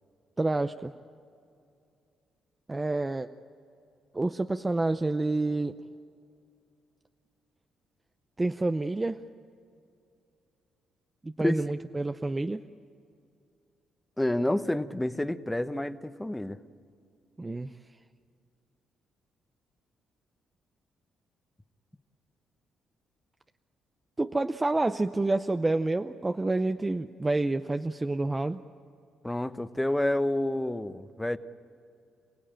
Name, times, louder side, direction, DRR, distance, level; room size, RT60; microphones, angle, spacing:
voice 1, 0.4-0.9 2.7-3.3 4.1-5.7 8.4-9.2 11.2-12.6 17.4-17.7 24.2-28.6, right 2 dB, 20° right, 9 dB, 0.6 m, -28 dB
voice 2, 14.2-16.6 29.2-31.4, left 1 dB, 10° left, 11 dB, 0.9 m, -29 dB
29.0 x 17.0 x 8.9 m, 2.5 s
cardioid pair, 90°, 0 cm